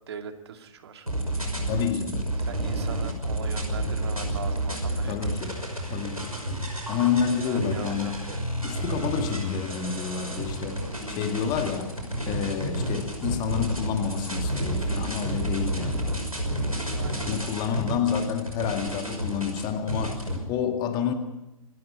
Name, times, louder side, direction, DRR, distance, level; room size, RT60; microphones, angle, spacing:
voice 1, 0.1-1.1 2.4-5.3 7.5-8.5 16.9-17.6, right 6 dB, 50° right, 2.4 m, -40 dB
sound 1, 1.1-20.4, right 1 dB, 90° right, 5.7 m, -30 dB
voice 2, 1.7-2.3 5.1-6.4 6.9-8.2 8.6-11.9 12.3-16.1 17.3-21.1, left 7 dB, 25° left, 1.9 m, -29 dB
sound 2, 8.8-15.6, equal, 5° right, 7.6 m, -50 dB
26.0 x 13.0 x 9.7 m
figure-of-eight pair, 120°, 18 cm